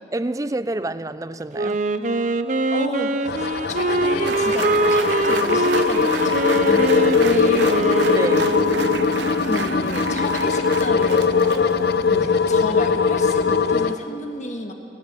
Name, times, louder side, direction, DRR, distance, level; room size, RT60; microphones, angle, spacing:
voice 1, 0.1-1.8 7.6-8.6 12.1-12.4, right 2 dB, 20° right, 14 dB, 0.4 m, -29 dB
Wind instrument woodwind instrument, 1.5-9.3, right 2 dB, 45° right, 0.8 m, -23 dB
voice 2, 2.7-7.8 9.4-11.8 12.2-14.7, left 1 dB, 40° left, 4 dB, 1.8 m, -31 dB
sound 1, 3.3-13.9, left 5 dB, 60° left, 0.6 m, -20 dB
sound 2, 4.2-11.9, right 6 dB, 75° right, 0.7 m, -33 dB
22.5 x 17.5 x 6.9 m, 2.7 s
head